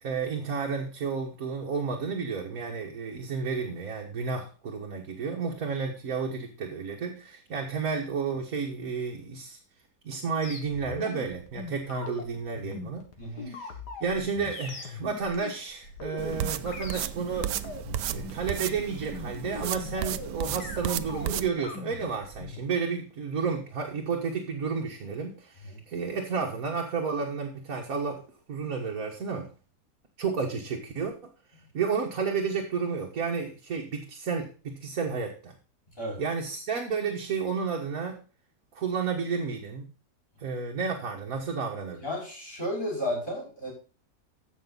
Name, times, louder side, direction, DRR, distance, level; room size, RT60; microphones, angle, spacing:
voice 1, 0.0-9.6 10.0-13.1 13.4-13.7 14.0-17.5 18.1-28.2 28.5-29.5 30.2-31.1 31.7-35.5 36.2-38.2 38.7-39.9 40.4-42.0, right 5 dB, 60° right, 0 dB, 1.9 m, -31 dB
sound 1, 10.4-22.6, left 4 dB, 75° left, 2.3 m, -41 dB
voice 2, 13.2-13.5 25.6-25.8 36.0-36.2 42.0-43.7, left 1 dB, 30° left, -2 dB, 5.6 m, -33 dB
sound 2, 16.2-21.5, right 11 dB, 85° right, 1.3 m, -34 dB
15.5 x 6.3 x 4.0 m, 0.36 s
omnidirectional pair, 1.8 m